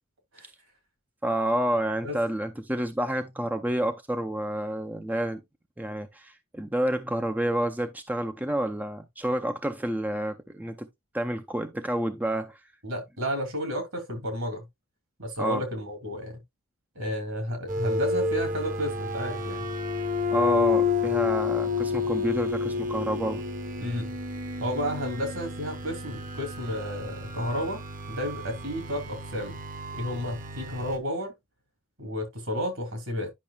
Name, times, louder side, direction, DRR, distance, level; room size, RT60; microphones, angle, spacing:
voice 1, 1.2-5.4 5.8-10.9 11.1-12.6 15.4-15.6 20.3-23.4, right 1 dB, 5° right, 0.4 m, -29 dB
voice 2, 12.8-14.6 15.2-16.4 16.9-19.7 23.8-24.1 24.6-27.8 28.1-29.6 29.9-31.3 32.0-33.3, equal, 70° right, 2.8 m, -32 dB
sound 1, 17.7-31.0, left 4 dB, 40° right, 0.9 m, -30 dB
10.5 x 5.8 x 2.3 m
head